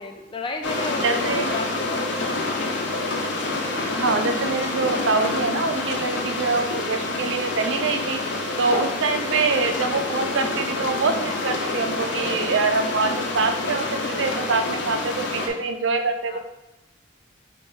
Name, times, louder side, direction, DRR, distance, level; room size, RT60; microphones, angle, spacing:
voice 1, 0.0-2.3 8.6-9.0 16.3-16.4, left 3 dB, 25° left, 4 dB, 0.4 m, -34 dB
sound 1, 0.6-15.5, left 2 dB, 65° left, 0.7 m, -27 dB
voice 2, 1.0-1.5 4.0-8.2 8.6-16.4, right 4 dB, 75° right, 7 dB, 0.4 m, -24 dB
4.8 x 2.6 x 3.9 m, 0.98 s
head